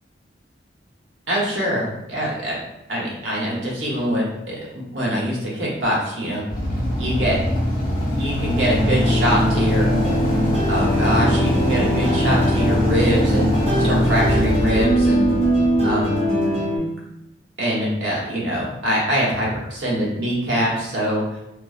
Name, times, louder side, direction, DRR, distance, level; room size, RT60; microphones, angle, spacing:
voice 1, 1.3-2.6 2.9-6.5 7.0-7.4 8.2-9.9 10.7-13.5 13.8-15.3 15.8-16.2 17.6-21.2, equal, 75° right, -5 dB, 1.0 m, -23 dB
Motorcycle / Idling, 6.5-16.4, left 1 dB, 45° left, 0.9 m, -22 dB
sound 1, 8.8-16.8, equal, 35° right, 1.1 m, -22 dB
2.7 x 2.4 x 2.4 m, 0.90 s
head